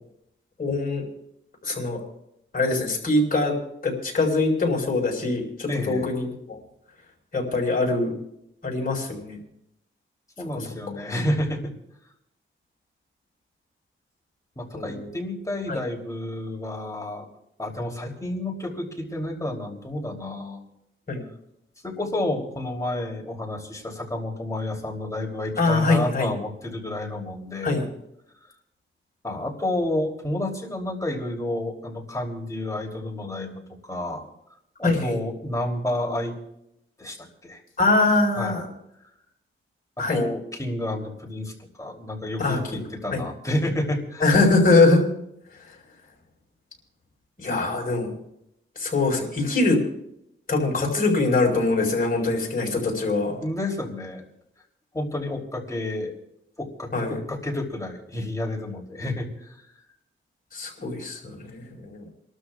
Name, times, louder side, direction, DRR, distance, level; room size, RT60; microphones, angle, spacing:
voice 1, 0.6-1.1 1.6-2.0 2.5-3.5 3.8-6.6 7.3-8.2 8.6-9.4 10.5-10.7 14.7-15.1 15.7-15.8 21.1-21.2 25.6-26.3 27.6-27.9 34.8-35.2 37.8-38.7 40.0-40.2 42.4-42.6 43.1-43.2 44.2-45.0 47.4-48.1 48.8-49.8 50.5-53.4 56.9-57.2 60.5-62.1, left 3 dB, 40° left, -1 dB, 4.6 m, -23 dB
voice 2, 5.7-6.0 10.4-11.7 14.6-17.3 17.6-20.6 21.8-27.8 29.2-33.5 33.9-34.2 34.8-36.3 37.0-37.6 38.4-38.6 40.0-41.5 41.8-44.3 53.4-54.2 54.9-56.1 56.6-59.6, left 1 dB, 15° left, -1 dB, 3.0 m, -30 dB
29.5 x 12.5 x 2.4 m, 0.79 s
wide cardioid pair, 100°, 21 cm